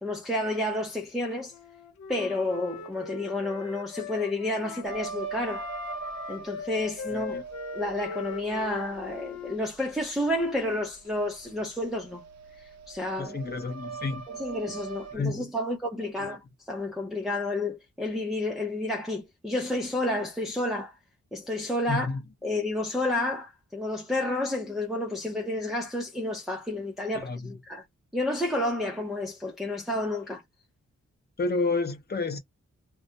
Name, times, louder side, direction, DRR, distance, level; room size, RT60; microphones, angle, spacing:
voice 1, 0.0-1.5 2.1-5.7 6.3-7.4 7.7-12.2 12.6-13.3 14.3-20.9 21.3-22.1 22.4-27.8 28.1-30.4, left 1 dB, ahead, 0.6 m, -30 dB
Wind instrument woodwind instrument, 1.5-5.1 5.5-9.6, left 6 dB, 75° left, 0.6 m, -40 dB
sound 1, 4.8-15.1, right 5 dB, 65° right, 0.6 m, -42 dB
voice 2, 7.1-7.4 13.2-14.2 15.1-15.5 16.2-16.3 21.9-22.2 27.1-27.5 31.4-32.4, left 3 dB, 35° left, 0.8 m, -30 dB
2.3 x 2.1 x 2.6 m
wide cardioid pair, 120°, 29 cm